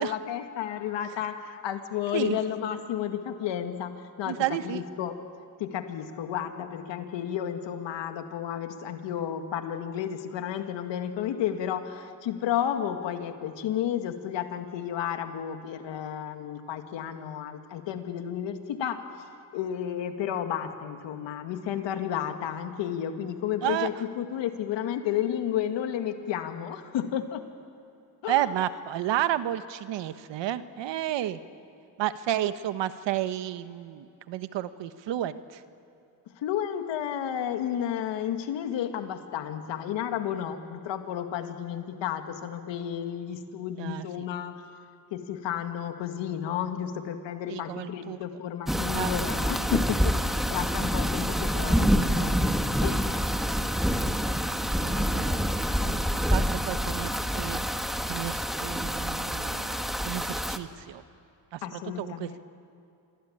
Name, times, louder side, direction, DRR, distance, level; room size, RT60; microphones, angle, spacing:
voice 1, 0.0-5.2 5.6-27.4 28.2-28.7 36.4-44.6 45.1-52.4 52.8-53.2 61.6-62.4, left 9 dB, 85° left, 6 dB, 2.1 m, -32 dB
voice 2, 4.2-4.8 23.6-23.9 28.3-31.4 32.0-35.6 43.8-44.1 47.5-48.2 48.9-49.1 54.0-54.2 54.6-55.4 55.8-56.0 56.3-57.6 58.1-61.0 61.5-62.4, right 12 dB, 80° right, 12 dB, 1.3 m, -31 dB
sound 1, 48.7-60.6, equal, ahead, 1.8 m, -27 dB
27.5 x 23.0 x 8.8 m, 2.7 s
cardioid pair, 70°, 43 cm